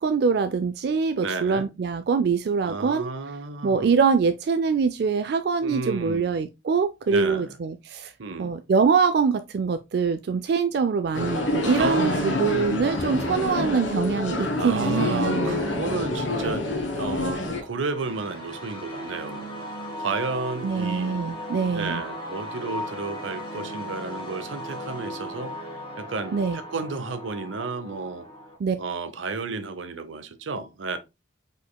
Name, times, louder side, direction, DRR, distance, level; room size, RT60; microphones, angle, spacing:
voice 1, 0.0-3.1 3.6-8.1 8.4-15.6 20.6-22.0 26.3-26.6 28.6-28.8, right 5 dB, 55° right, 0.3 m, -24 dB
voice 2, 1.2-1.7 2.6-4.0 5.6-6.4 7.1-7.6 8.2-8.5 11.8-12.5 14.6-16.7 16.9-19.5 20.0-21.2 21.7-25.5 26.0-28.3 28.8-31.0, right 4 dB, 85° right, 0.7 m, -32 dB
sound 1, 11.1-17.6, left 2 dB, 80° left, 1.5 m, -27 dB
sound 2, 17.5-28.6, equal, 25° left, 1.6 m, -37 dB
5.2 x 4.2 x 2.2 m
head